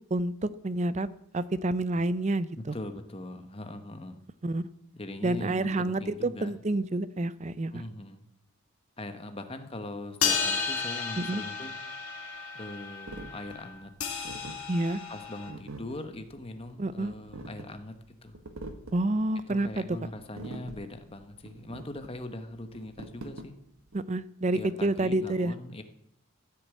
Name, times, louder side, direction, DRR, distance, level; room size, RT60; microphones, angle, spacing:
voice 1, 0.1-1.1 1.3-2.7 4.4-4.7 5.2-7.8 11.2-11.4 14.7-15.0 16.8-17.1 18.9-20.0 23.9-25.5, right 2 dB, 30° right, 16 dB, 0.5 m, -28 dB
voice 2, 2.7-4.2 4.9-6.5 7.7-8.2 9.0-11.8 12.5-13.9 15.1-18.0 18.2-18.4 19.5-23.6 24.5-25.8, left 1 dB, 25° left, 8 dB, 1.1 m, -41 dB
sound 1, 10.2-15.5, left 6 dB, 75° left, 2.4 m, -33 dB
sound 2, 13.1-24.0, right 2 dB, 75° right, 1.5 m, -45 dB
14.5 x 6.7 x 8.4 m, 0.76 s
head